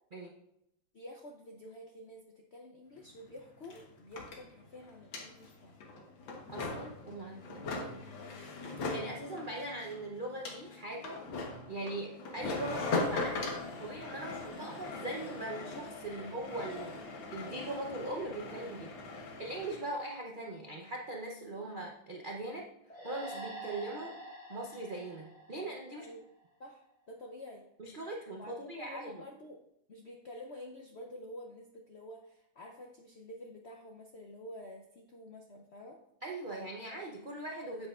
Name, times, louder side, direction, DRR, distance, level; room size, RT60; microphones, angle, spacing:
voice 1, 0.9-5.8 8.2-8.6 21.6-21.7 26.0-26.2 26.6-27.6 28.4-29.6 29.9-36.0, left 1 dB, 70° left, 1 dB, 0.6 m, -49 dB
sound 1, 3.0-3.1 3.2-19.9, left 3 dB, 85° left, 2.0 m, -40 dB
voice 2, 6.5-8.0 8.9-11.2 11.7-13.5 13.8-17.0 17.3-24.2 24.5-26.1 27.8-29.2 36.2-37.9, right 2 dB, 70° right, 0 dB, 0.4 m, -41 dB
sound 2, 22.9-26.4, right 2 dB, 5° left, 2.8 m, -47 dB
9.0 x 8.0 x 2.4 m, 0.79 s
omnidirectional pair, 2.1 m